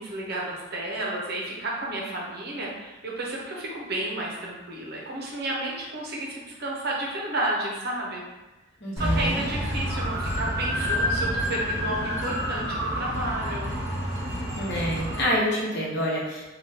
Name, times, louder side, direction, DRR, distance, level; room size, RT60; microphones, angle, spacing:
voice 1, 0.0-8.3 9.0-13.7, right 1 dB, 50° right, -3 dB, 0.7 m, -32 dB
voice 2, 8.8-9.4 14.6-16.5, equal, 55° left, -6 dB, 0.9 m, -27 dB
sound 1, 9.0-15.2, equal, 15° right, 1.2 m, -28 dB
3.5 x 2.3 x 2.7 m, 1.1 s
head